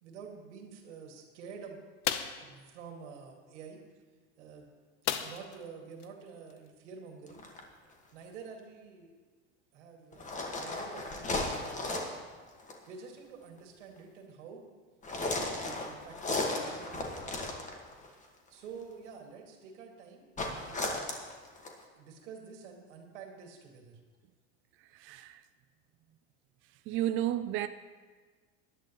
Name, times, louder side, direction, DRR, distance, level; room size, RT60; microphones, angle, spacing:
voice 1, 0.0-1.8 2.4-3.8 4.4-4.7 5.2-7.5 8.1-9.1 9.7-12.0 12.9-14.7 15.2-17.4 18.5-21.3 21.9-24.0, right 5 dB, 90° right, 2.2 m, -49 dB
sound 1, 2.0-2.4 5.0-5.6 6.0-6.1 6.5-6.7, left 10 dB, 75° left, 0.9 m, -33 dB
sound 2, 7.3-7.6 10.1-12.2 12.6-12.8 15.0-18.1 20.4-21.8, left 2 dB, 20° left, 1.6 m, -35 dB
voice 2, 25.0-25.4 26.9-27.7, right 12 dB, 35° right, 0.4 m, -32 dB
17.5 x 11.0 x 3.1 m
supercardioid pair, 125°, 35 cm